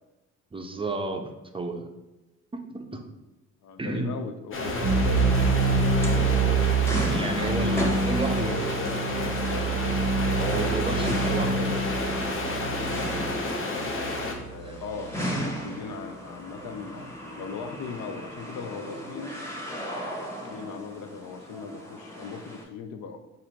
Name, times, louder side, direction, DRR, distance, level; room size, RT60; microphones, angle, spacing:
voice 1, 0.5-1.9 2.5-3.0 3.8-4.2 7.0-8.7 10.4-11.8 14.6-14.9, right 2 dB, 20° right, 4 dB, 0.5 m, -32 dB
voice 2, 3.6-5.5 8.1-9.7 10.7-10.8 11.5-11.7 14.5-19.4 20.5-23.2, left 5 dB, 70° left, 7 dB, 0.6 m, -39 dB
sound 1, 4.5-14.3, left 2 dB, 45° left, 0.8 m, -31 dB
sound 2, 4.6-14.7, right 4 dB, 85° right, 0.7 m, -26 dB
sound 3, 5.2-22.6, equal, 10° left, 1.0 m, -37 dB
4.2 x 2.6 x 4.3 m, 1.0 s
cardioid pair, 90°, 30 cm